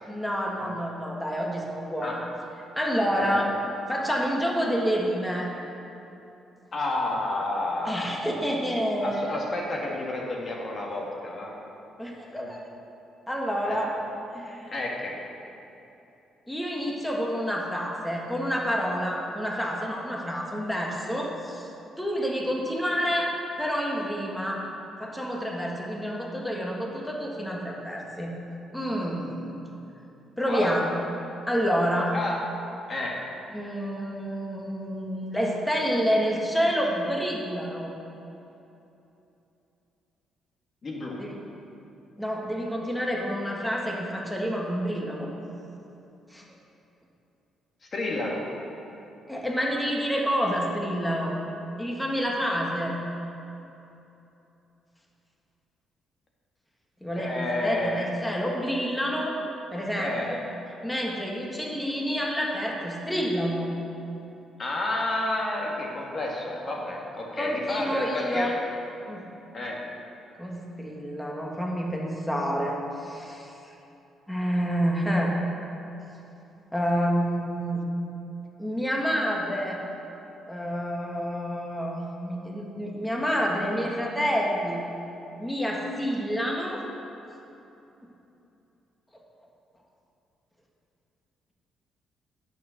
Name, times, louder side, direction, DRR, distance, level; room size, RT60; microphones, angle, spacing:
voice 1, 0.1-2.3 2.7-3.5 3.9-5.5 7.8-9.2 12.0-12.6 13.3-13.9 14.3-14.7 16.5-21.7 22.0-23.3 23.6-24.6 25.0-28.3 28.7-29.6 30.4-31.1 31.5-32.1 33.5-37.9 41.2-41.3 42.2-45.3 46.3-46.4 49.3-51.4 51.8-53.0 57.0-59.4 59.7-60.4 60.8-63.7 67.4-68.6 69.1-69.2 70.4-73.5 74.3-75.3 76.7-77.8 78.6-79.8 80.5-84.8 85.4-86.8, equal, 5° left, -2 dB, 1.6 m, -28 dB
voice 2, 3.1-3.5 6.7-8.1 9.0-11.5 12.3-12.5 13.7-13.8 14.7-15.1 30.4-30.8 32.1-32.3 32.9-33.1 40.8-41.2 47.9-48.4 57.2-58.1 60.0-60.3 64.6-68.5 69.5-69.8, left 2 dB, 40° left, -2 dB, 2.1 m, -30 dB
9.2 x 6.7 x 6.6 m, 2.9 s
cardioid pair, 95°, 0 cm